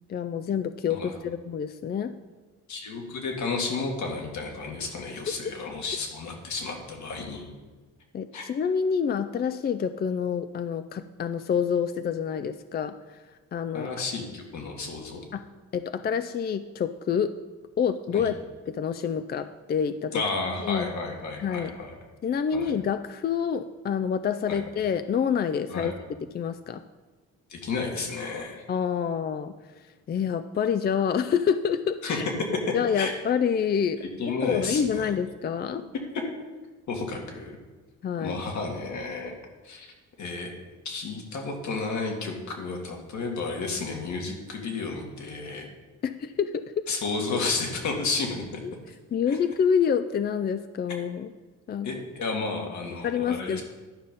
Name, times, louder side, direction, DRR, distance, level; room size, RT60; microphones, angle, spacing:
voice 1, 0.1-2.1 8.1-13.2 13.5-13.9 15.3-15.4 15.7-17.3 17.8-18.3 18.7-20.2 20.6-20.9 21.4-21.7 22.2-25.9 26.3-26.8 28.7-29.5 30.1-32.2 32.7-34.0 34.4-35.8 38.0-38.4 46.0-46.7 48.6-48.7 49.1-51.3 51.7-51.9 53.0-53.6, left 7 dB, 35° left, 10 dB, 0.4 m, -27 dB
voice 2, 2.7-7.5 8.3-8.5 13.7-15.2 18.1-18.3 20.1-22.0 22.5-22.7 24.5-24.6 25.7-25.9 27.5-28.6 32.0-33.1 34.2-35.1 36.9-37.6 38.2-39.4 39.6-39.9 40.2-40.5 40.8-45.7 46.9-48.6 49.3-49.4 51.8-53.6, left 3 dB, 70° left, 1 dB, 2.0 m, -32 dB
11.5 x 5.2 x 5.2 m, 1.3 s
cardioid pair, 90°, 30 cm